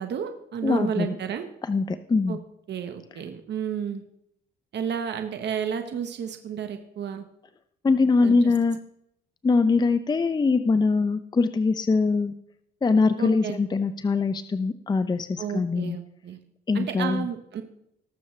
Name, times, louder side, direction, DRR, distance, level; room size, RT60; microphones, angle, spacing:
voice 1, 0.0-1.5 2.3-2.4 2.7-4.0 4.7-7.2 8.2-8.5 13.2-13.6 15.4-16.4 16.7-17.6, right 7 dB, 60° right, 7 dB, 1.1 m, -31 dB
voice 2, 0.6-1.2 1.6-2.4 7.8-8.8 9.4-12.3 12.8-16.0 16.7-17.3, left 4 dB, 20° left, 11 dB, 0.5 m, -23 dB
19.0 x 7.0 x 3.2 m, 0.76 s
cardioid pair, 90°, 20 cm